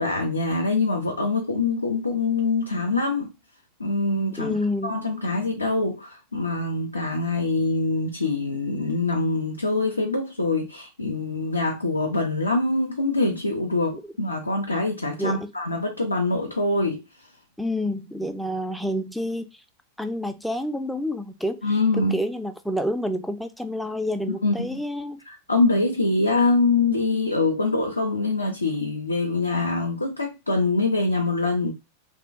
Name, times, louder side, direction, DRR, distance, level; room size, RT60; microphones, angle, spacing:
voice 1, 0.0-3.3 3.8-4.6 4.8-17.0 21.6-22.2 24.4-24.8 25.3-31.7, left 3 dB, 80° left, 0.4 m, -24 dB
voice 2, 4.4-5.0 15.2-15.5 17.6-19.5 20.0-21.6 22.0-25.2, left 1 dB, ahead, 0.3 m, -28 dB
2.6 x 2.1 x 2.4 m
figure-of-eight pair, 90°, 0 cm